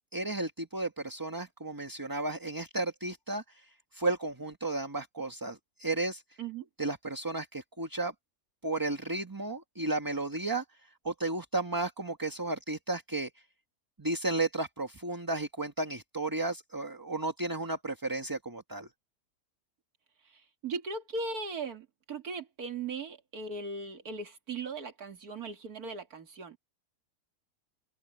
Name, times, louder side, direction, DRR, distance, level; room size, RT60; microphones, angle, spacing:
voice 1, 0.0-6.2 6.8-8.1 8.6-13.3 14.0-18.9, right 2 dB, 15° right, 1.2 m, -33 dB
voice 2, 20.3-26.6, right 3 dB, 80° right, 2.5 m, -38 dB
omnidirectional pair, 1.6 m